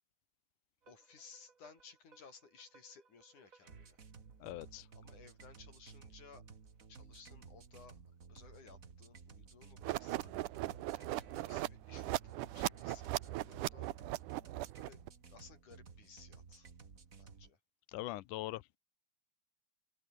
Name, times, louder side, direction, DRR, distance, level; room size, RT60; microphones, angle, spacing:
sound 1, 0.8-17.5, right 5 dB, 30° right, 1.7 m, -57 dB
voice 1, 0.9-4.0 4.9-6.5 6.9-8.0 8.3-13.9 14.7-15.0 15.3-16.7 17.2-17.6, left 5 dB, 70° left, 6.0 m, -59 dB
voice 2, 4.4-4.9 17.9-18.6, left 16 dB, 85° left, 2.3 m, -41 dB
sound 2, 9.8-15.1, right 17 dB, 80° right, 2.2 m, -38 dB
open air
omnidirectional pair, 3.7 m